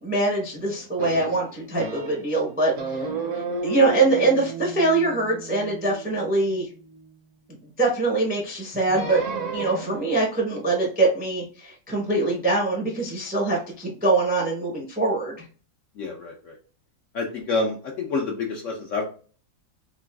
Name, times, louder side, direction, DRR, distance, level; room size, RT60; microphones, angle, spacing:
voice 1, 0.0-3.0 3.6-6.7 7.8-9.2 9.5-15.4, right 2 dB, 10° right, -2 dB, 0.4 m, -23 dB
sound 1, 1.0-2.4 2.8-7.1 8.9-10.2, right 4 dB, 60° right, 0.9 m, -33 dB
voice 2, 16.0-16.5 17.1-19.0, left 3 dB, 70° left, 1 dB, 0.8 m, -28 dB
3.8 x 2.5 x 2.2 m, 0.41 s
omnidirectional pair, 1.7 m